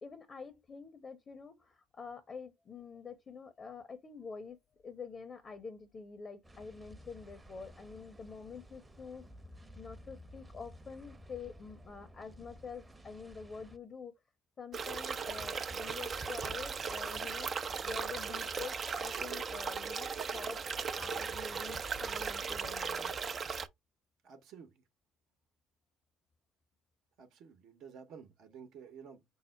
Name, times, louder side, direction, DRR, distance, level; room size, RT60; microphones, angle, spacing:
voice 1, 0.0-9.3 9.8-14.1 14.6-17.5 17.8-20.6 20.9-23.1, left 5 dB, 40° left, 1.0 m, -47 dB
sound 1, 6.4-13.8, equal, 20° right, 0.9 m, -54 dB
sound 2, 14.7-23.7, right 5 dB, 45° right, 0.6 m, -37 dB
voice 2, 24.2-24.8 27.2-29.2, right 6 dB, 60° right, 1.0 m, -52 dB
5.5 x 2.0 x 4.5 m
hypercardioid pair, 50°, 0 cm